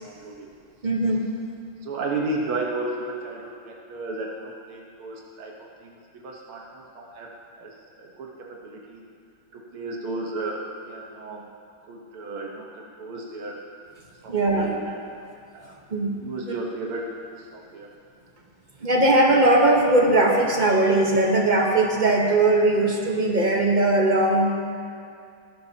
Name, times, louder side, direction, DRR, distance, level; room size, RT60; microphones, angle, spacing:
voice 1, 0.0-0.5 1.8-5.5 5.8-7.3 7.6-9.0 9.5-11.4 11.8-13.6 14.2-15.3 15.5-15.7 16.2-17.9, right 2 dB, 85° right, -2 dB, 2.1 m, -34 dB
voice 2, 0.8-1.2 14.3-14.7 15.9-16.1 18.8-24.6, right 2 dB, 30° right, 0 dB, 0.9 m, -19 dB
19.0 x 12.5 x 2.9 m, 2.4 s
omnidirectional pair, 2.3 m